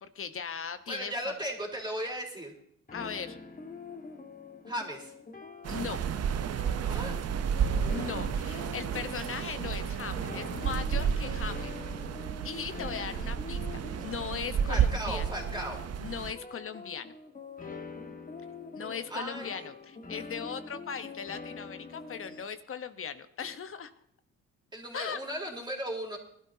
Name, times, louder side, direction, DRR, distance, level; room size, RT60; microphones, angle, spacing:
voice 1, 0.0-1.3 2.9-3.4 5.7-6.0 7.9-11.7 12.4-13.6 14.0-15.2 16.0-17.1 18.7-23.9 24.9-25.2, left 7 dB, 45° left, 10 dB, 1.1 m, -38 dB
voice 2, 0.9-2.5 4.7-5.1 6.9-7.2 14.7-15.8 19.1-19.7 24.7-26.2, equal, 15° right, 0 dB, 4.2 m, -36 dB
sound 1, 2.9-22.4, left 4 dB, 25° left, 1.6 m, -45 dB
sound 2, 5.6-16.3, right 8 dB, 55° right, 0.8 m, -32 dB
21.0 x 12.5 x 2.8 m, 0.70 s
cardioid pair, 90°, 30 cm